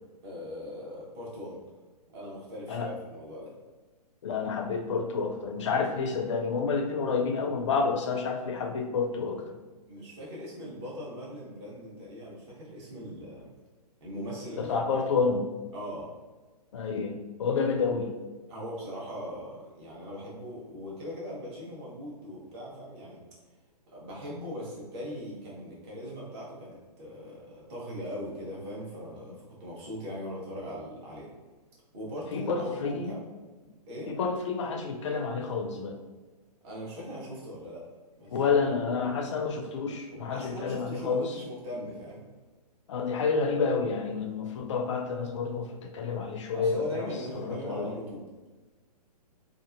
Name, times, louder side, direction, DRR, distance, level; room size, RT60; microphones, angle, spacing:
voice 1, 0.2-1.6 2.1-3.5 9.9-13.5 14.0-15.0 15.7-16.1 17.6-17.8 18.5-23.2 23.9-31.3 31.9-33.2 33.6-34.1 36.6-37.8 38.2-38.5 40.3-42.2 46.5-48.2, equal, 40° right, -5 dB, 1.0 m, -40 dB
voice 2, 4.2-9.6 14.6-15.5 16.7-18.1 32.3-33.1 34.1-36.0 38.3-41.4 42.9-47.9, left 5 dB, 50° left, 4 dB, 0.4 m, -29 dB
2.6 x 2.4 x 2.5 m, 1.3 s
figure-of-eight pair, 125°, 21 cm